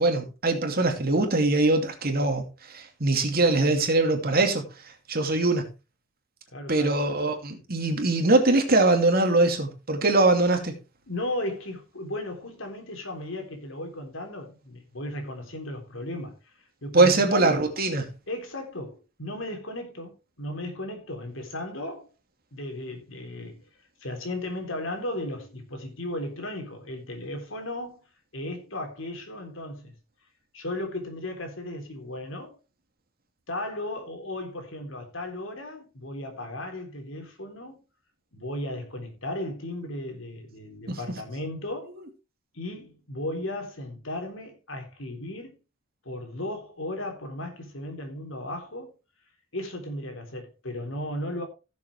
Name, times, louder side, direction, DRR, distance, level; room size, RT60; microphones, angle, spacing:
voice 1, 0.0-2.4 2.7-4.6 5.1-5.7 6.7-10.7 16.9-18.1 40.9-41.2, right 2 dB, 50° right, 2.6 m, -22 dB
voice 2, 6.5-7.0 11.1-16.3 16.8-17.6 18.3-22.1 22.5-23.6 24.0-28.1 28.3-29.9 30.5-32.6 33.5-37.8 38.3-42.0 42.5-45.6 46.1-48.9 49.5-51.4, left 1 dB, 80° left, 3.6 m, -35 dB
16.5 x 7.1 x 3.4 m
head